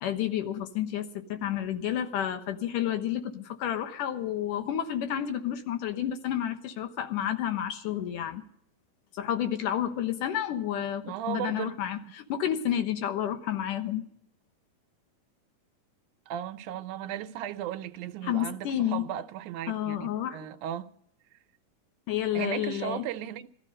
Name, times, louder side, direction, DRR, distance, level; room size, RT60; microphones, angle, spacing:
voice 1, 0.0-8.4 9.1-14.1 18.2-19.1 19.7-20.4 22.1-23.0, left 10 dB, 85° left, 2.8 m, -30 dB
voice 2, 11.0-11.8 16.3-20.9 22.3-23.5, right 10 dB, 80° right, 2.2 m, -36 dB
17.0 x 13.5 x 5.4 m
omnidirectional pair, 3.6 m